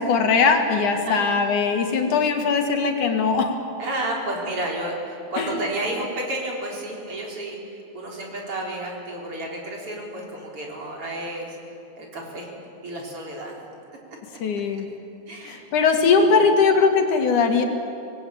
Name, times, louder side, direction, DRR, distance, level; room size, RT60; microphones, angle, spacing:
voice 1, 0.0-3.5 5.4-5.5 14.4-14.9 15.5-17.6, left 5 dB, 85° left, 4 dB, 3.4 m, -20 dB
voice 2, 1.0-1.3 3.8-11.6 12.0-12.5 12.8-13.6 15.3-15.7 16.3-16.4, right 1 dB, 45° right, -1 dB, 4.8 m, -31 dB
26.0 x 19.5 x 8.7 m, 2.6 s
omnidirectional pair, 3.4 m